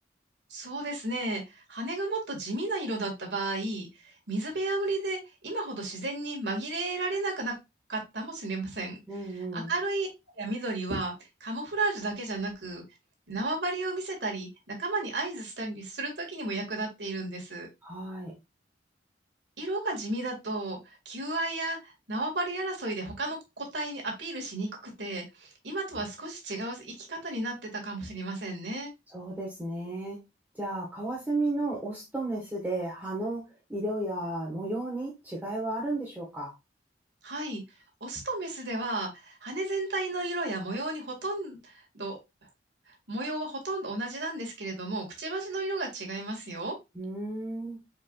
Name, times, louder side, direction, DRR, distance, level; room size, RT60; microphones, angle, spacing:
voice 1, 0.5-7.6 7.9-9.0 9.3-10.1 10.4-11.1 11.4-12.8 13.3-17.7 19.6-28.9 37.2-37.6 38.0-42.2 42.9-46.8, right 2 dB, 85° right, 1 dB, 1.9 m, -33 dB
voice 2, 9.1-9.7 17.8-18.3 29.1-30.2 30.5-33.4 33.7-36.5 46.9-47.8, right 2 dB, 10° right, -3 dB, 1.3 m, -33 dB
4.7 x 4.6 x 2.3 m, 0.23 s
head